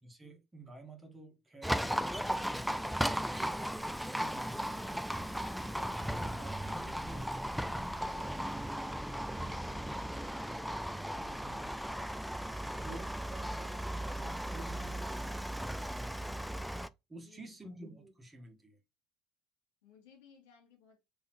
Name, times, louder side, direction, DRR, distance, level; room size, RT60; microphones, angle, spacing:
voice 1, 0.0-5.2 5.6-12.6 12.8-16.6 17.1-18.8, right 1 dB, 20° right, 1.6 m, -52 dB
Livestock farm animals working animals, 1.6-16.9, equal, ahead, 0.4 m, -36 dB
voice 2, 7.9-8.3 17.2-17.5 19.8-21.0, left 7 dB, 80° left, 1.8 m, -62 dB
4.2 x 3.2 x 3.1 m
hypercardioid pair, 75°, 0 cm